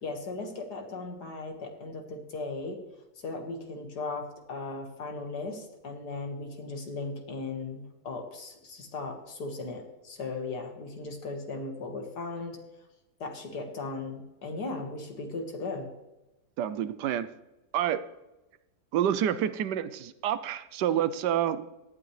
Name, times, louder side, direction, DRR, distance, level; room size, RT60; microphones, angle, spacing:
voice 1, 0.0-2.8 3.2-12.6 13.2-15.9, left 3 dB, 65° left, 3 dB, 2.3 m, -37 dB
voice 2, 16.6-17.3 17.7-18.0 18.9-21.6, right 10 dB, 75° right, 13 dB, 1.2 m, -28 dB
17.0 x 11.5 x 3.3 m, 1.0 s
omnidirectional pair, 1.9 m